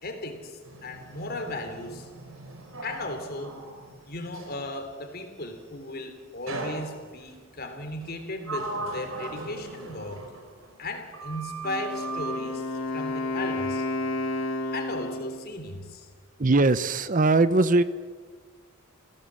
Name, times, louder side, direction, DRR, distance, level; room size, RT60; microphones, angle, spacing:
voice 1, 0.0-2.1 2.8-3.6 4.0-10.3 10.8-13.9 14.7-16.1, left 2 dB, 50° left, 6 dB, 3.5 m, -36 dB
Sliding door, 0.6-4.7 6.5-7.4 8.0-10.9 11.1-12.5, right 3 dB, 85° right, 5.0 m, -38 dB
Wind instrument woodwind instrument, 11.6-15.5, left 2 dB, 80° left, 3.4 m, -31 dB
voice 2, 16.4-17.8, right 3 dB, 40° right, 14 dB, 0.8 m, -20 dB
28.5 x 17.0 x 7.7 m, 1.5 s
head